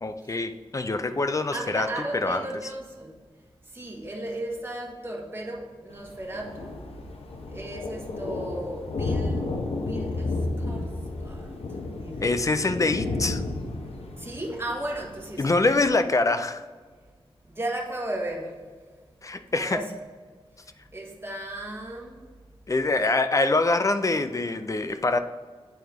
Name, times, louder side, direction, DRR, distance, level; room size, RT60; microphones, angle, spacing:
voice 1, 0.0-2.4 12.2-13.4 15.4-16.6 19.2-19.8 22.7-25.2, left 3 dB, 35° left, 9 dB, 0.5 m, -24 dB
voice 2, 1.5-3.2 3.6-6.8 7.5-9.5 9.8-11.5 11.9-12.3 14.2-15.6 17.4-18.6 19.5-19.9 20.6-22.3, right 1 dB, 25° right, -1 dB, 1.6 m, -35 dB
Thunder, 5.9-15.9, left 2 dB, 85° left, 0.9 m, -32 dB
9.2 x 4.5 x 3.5 m, 1.5 s
wide cardioid pair, 80°, 10 cm